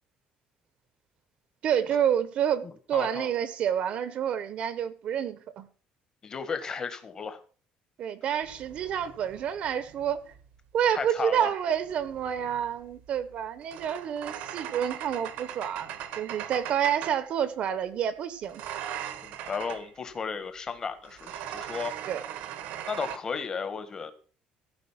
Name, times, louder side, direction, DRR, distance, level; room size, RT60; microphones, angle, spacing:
voice 1, 1.6-5.7 8.0-10.2 10.7-18.6 22.1-22.2, right 9 dB, 45° right, 1.0 m, -29 dB
voice 2, 2.9-3.3 6.2-7.4 10.9-11.5 19.2-21.9 22.9-24.1, left 5 dB, 25° left, 1.5 m, -34 dB
sound 1, 8.4-10.5 11.8-17.3 18.4-19.9 21.0-23.2, right 10 dB, 80° right, 1.4 m, -40 dB
15.5 x 5.2 x 7.3 m
cardioid pair, 165°, 3 cm